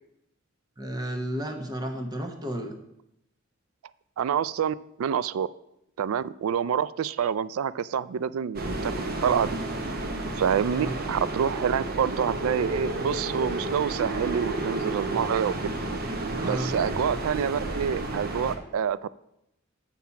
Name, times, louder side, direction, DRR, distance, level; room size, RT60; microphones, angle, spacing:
voice 1, 0.8-2.7 10.7-11.0 16.4-16.8, right 1 dB, 20° right, 4 dB, 1.0 m, -32 dB
voice 2, 4.2-5.5 6.0-8.9 9.2-9.5 10.4-15.7 16.4-19.1, right 8 dB, 85° right, 18 dB, 0.3 m, -27 dB
sound 1, 8.5-18.6, right 2 dB, 50° right, 0.9 m, -31 dB
7.3 x 5.7 x 5.7 m, 0.83 s
head